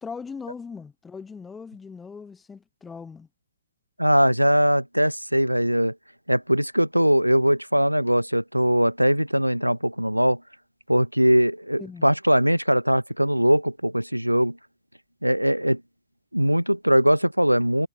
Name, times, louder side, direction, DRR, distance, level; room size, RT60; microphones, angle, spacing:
voice 1, 0.0-3.3 11.8-12.1, left 5 dB, 10° left, 0.9 m, -39 dB
voice 2, 4.0-5.9 6.3-10.4 10.9-14.6 15.2-15.8 16.3-17.9, equal, 90° right, 0.4 m, -21 dB
figure-of-eight pair, 110°, 0 cm